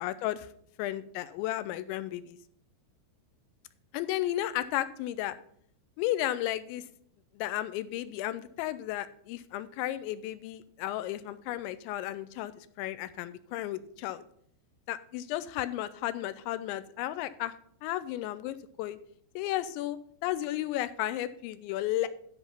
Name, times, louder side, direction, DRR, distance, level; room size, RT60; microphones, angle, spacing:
voice 1, 0.0-0.5 0.8-2.4 3.9-5.3 6.0-6.8 7.4-14.2 14.9-17.5 17.8-19.0 19.4-22.1, left 14 dB, 85° left, 14 dB, 2.7 m, -33 dB
12.5 x 5.6 x 5.7 m, 0.64 s
omnidirectional pair, 5.6 m